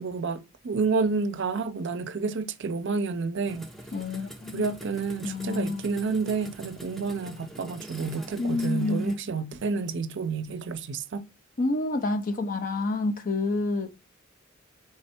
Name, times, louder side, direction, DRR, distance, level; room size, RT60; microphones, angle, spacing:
voice 1, 0.0-3.7 4.5-11.2, right 4 dB, 60° right, 0.5 m, -29 dB
sound 1, 3.5-9.2, right 1 dB, ahead, 0.6 m, -44 dB
voice 2, 3.9-4.7 5.2-5.8 8.4-9.2 11.6-14.0, left 2 dB, 45° left, 0.5 m, -28 dB
3.5 x 3.2 x 4.3 m
head